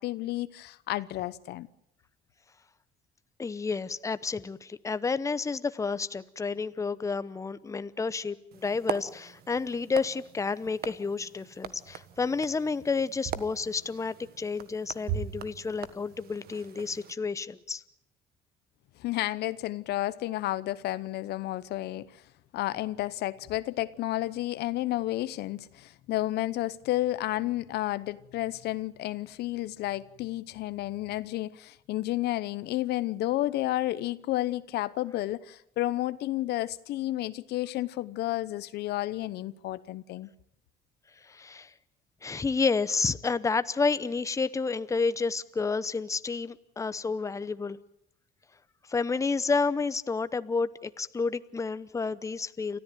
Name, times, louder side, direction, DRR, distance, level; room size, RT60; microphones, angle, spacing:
voice 1, 0.0-1.7 19.0-22.2 22.5-40.3, left 16 dB, 75° left, 0.9 m, -31 dB
voice 2, 3.4-17.8 41.2-41.7 42.2-47.8 48.9-52.8, left 4 dB, 20° left, 0.8 m, -30 dB
sound 1, 8.5-17.1, right 9 dB, 65° right, 1.4 m, -40 dB
29.0 x 13.5 x 9.2 m
cardioid pair, 110°, 17 cm